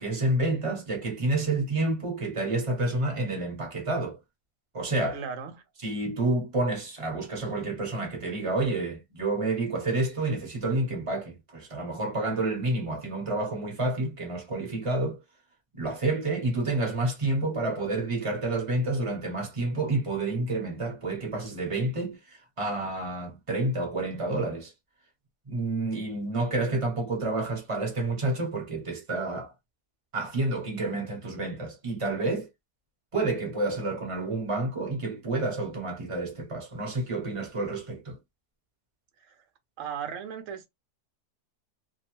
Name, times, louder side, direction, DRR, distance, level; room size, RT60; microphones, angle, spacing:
voice 1, 0.0-4.2 4.7-5.2 5.8-15.2 15.7-22.2 22.6-24.7 25.5-29.5 30.1-32.5 33.1-38.2, right 2 dB, 25° right, 0.9 m, -29 dB
voice 2, 5.1-5.6 39.2-39.4 39.8-40.7, right 7 dB, 60° right, 1.0 m, -37 dB
2.9 x 2.1 x 3.0 m
omnidirectional pair, 1.7 m